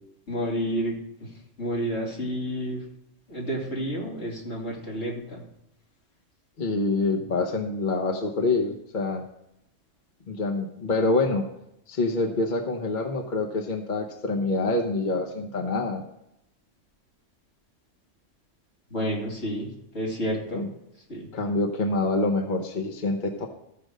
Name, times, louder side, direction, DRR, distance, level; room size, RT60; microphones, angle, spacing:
voice 1, 0.3-0.9 1.6-2.8 3.3-5.4 18.9-19.7 19.9-20.6 21.1-21.3, equal, 60° left, -3 dB, 2.9 m, -30 dB
voice 2, 6.6-9.3 10.3-11.5 11.9-16.0 20.5-20.7 21.3-23.5, left 3 dB, 45° left, 2 dB, 0.9 m, -26 dB
14.0 x 5.1 x 6.3 m, 0.81 s
omnidirectional pair, 1.3 m